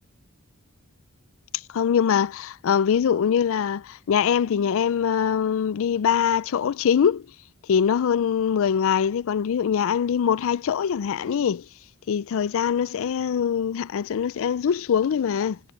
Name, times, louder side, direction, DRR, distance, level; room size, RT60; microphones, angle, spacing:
voice 1, 1.7-7.2 7.7-11.6 12.1-15.6, left 7 dB, 65° left, 0.4 m, -23 dB
head